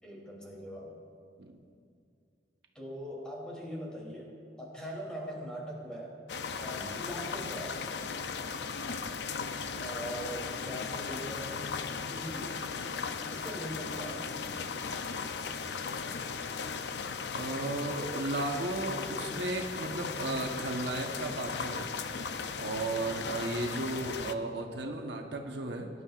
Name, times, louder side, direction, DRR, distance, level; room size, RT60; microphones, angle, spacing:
voice 1, 0.0-0.9 2.7-6.2 6.6-7.9 9.8-12.6 13.3-14.3 22.9-23.2, equal, 5° left, -4 dB, 3.1 m, -42 dB
sound 1, 6.3-24.3, left 5 dB, 85° left, 0.6 m, -37 dB
voice 2, 17.3-21.9 22.6-25.9, right 2 dB, 85° right, 2 dB, 1.1 m, -35 dB
22.5 x 11.0 x 2.5 m, 2.3 s
head